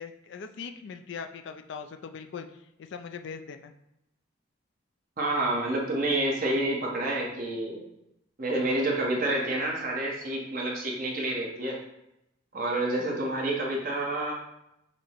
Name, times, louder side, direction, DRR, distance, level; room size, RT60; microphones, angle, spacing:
voice 1, 0.0-3.7, left 6 dB, 60° left, 8 dB, 0.3 m, -40 dB
voice 2, 5.2-7.8 8.4-11.8 12.5-14.3, right 1 dB, 45° right, -2 dB, 0.9 m, -28 dB
5.9 x 2.0 x 4.4 m, 0.84 s
head